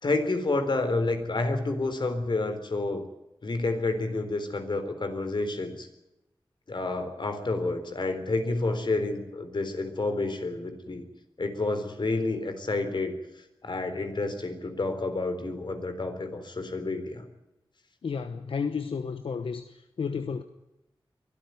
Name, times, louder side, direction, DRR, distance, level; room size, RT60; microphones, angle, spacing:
voice 1, 0.0-3.1 3.4-5.9 6.7-11.1 11.4-13.1 13.6-17.2, left 2 dB, 60° left, 3.8 m, -29 dB
voice 2, 18.0-20.4, left 5 dB, 90° left, 1.0 m, -32 dB
23.0 x 13.5 x 9.5 m
wide cardioid pair, 65°, 9 cm